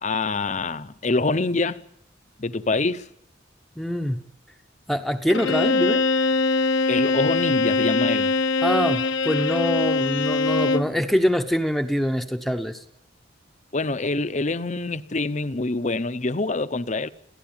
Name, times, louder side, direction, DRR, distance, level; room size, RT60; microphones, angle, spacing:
voice 1, 0.0-1.8 2.4-3.1 6.9-8.3 13.7-17.1, left 3 dB, 40° left, 0.8 m, -25 dB
voice 2, 3.8-4.2 4.9-6.0 8.6-12.8, equal, ahead, 1.0 m, -24 dB
Bowed string instrument, 5.3-11.0, left 3 dB, 85° left, 1.0 m, -22 dB
27.0 x 16.5 x 9.0 m
head